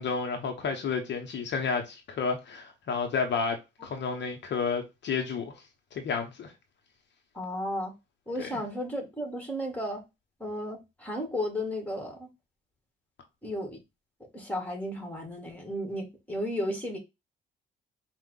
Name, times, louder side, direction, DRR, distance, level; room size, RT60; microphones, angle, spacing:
voice 1, 0.0-5.5 5.9-6.5 8.4-8.6, left 5 dB, 65° left, 1.0 m, -31 dB
voice 2, 7.4-7.9 8.3-10.0 10.4-12.3 13.4-13.8 14.3-17.0, equal, 5° left, 1.8 m, -34 dB
4.5 x 2.4 x 3.8 m
cardioid pair, 90°, 20 cm